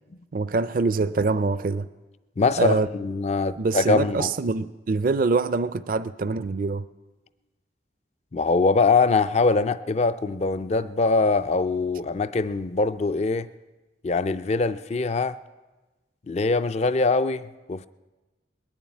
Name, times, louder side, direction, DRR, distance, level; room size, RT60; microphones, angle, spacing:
voice 1, 0.3-1.9 2.6-2.9 3.6-6.8, right 3 dB, 50° right, 0.4 m, -24 dB
voice 2, 2.4-4.3 8.3-13.5 14.0-15.4 16.3-17.9, left 3 dB, 35° left, 0.4 m, -23 dB
20.5 x 7.3 x 9.5 m
head